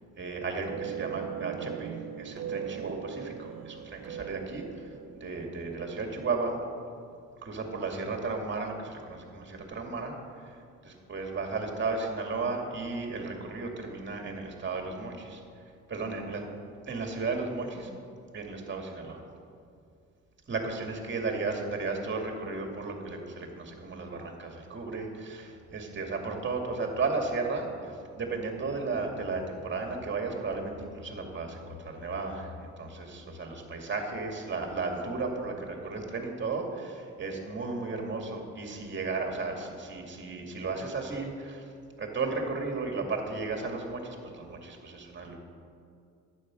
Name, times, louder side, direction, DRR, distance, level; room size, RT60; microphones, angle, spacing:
voice 1, 0.2-6.6 7.4-10.1 10.4-15.4 15.9-16.5 16.8-17.9 18.3-19.2 20.5-41.7 42.0-45.4, right 3 dB, 40° right, 2 dB, 2.3 m, -34 dB
sound 1, 0.7-6.8, right 9 dB, 55° right, 0.5 m, -40 dB
sound 2, 23.7-33.4, left 5 dB, 45° left, 3.4 m, -52 dB
11.5 x 8.8 x 6.3 m, 2.4 s
cardioid pair, 90°, 30 cm